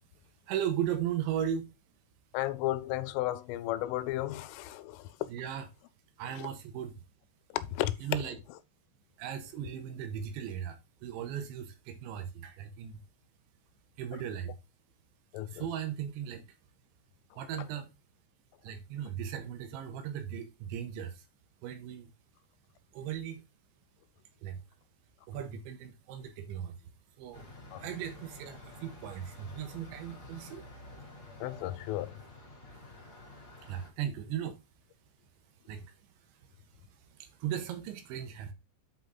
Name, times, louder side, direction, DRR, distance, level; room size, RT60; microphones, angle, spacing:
voice 1, 0.5-1.7 5.3-5.6 6.2-6.9 8.0-8.4 9.2-13.0 14.0-14.6 15.5-16.4 17.4-17.9 18.6-21.2 21.6-22.1 22.9-23.4 24.4-24.6 25.3-26.8 27.2-27.5 27.8-30.7 33.7-34.6 35.7-35.9 37.2-38.5, right 9 dB, 80° right, 3.1 m, -37 dB
voice 2, 2.3-5.2 6.3-6.5 7.5-8.6 14.1-14.2 15.3-15.7 17.6-17.7 27.7-27.9 31.4-32.2, left 15 dB, 85° left, 3.2 m, -34 dB
sound 1, 27.3-33.9, left 2 dB, 30° left, 2.3 m, -50 dB
8.3 x 5.0 x 4.0 m
omnidirectional pair, 5.7 m